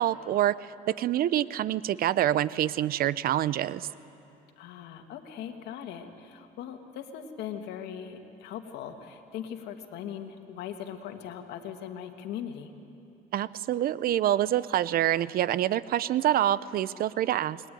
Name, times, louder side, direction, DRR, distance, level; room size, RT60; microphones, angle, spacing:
voice 1, 0.0-3.9 13.3-17.6, right 12 dB, 60° right, 18 dB, 0.7 m, -26 dB
voice 2, 4.6-12.7, left 9 dB, 80° left, 6 dB, 2.3 m, -40 dB
29.5 x 21.5 x 9.5 m, 2.7 s
cardioid pair, 110°, 17 cm